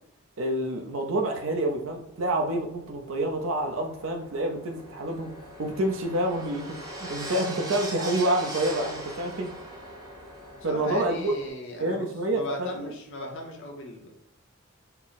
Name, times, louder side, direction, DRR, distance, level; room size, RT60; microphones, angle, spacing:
voice 1, 0.4-5.3 5.6-9.5 10.6-11.3 11.8-12.9, right 1 dB, 65° right, 4 dB, 0.6 m, -28 dB
sound 1, 1.4-11.5, right 1 dB, 20° right, 0.7 m, -41 dB
voice 2, 10.6-12.1 12.3-14.1, left 1 dB, 60° left, 1 dB, 0.7 m, -37 dB
4.4 x 2.0 x 4.0 m, 0.75 s
head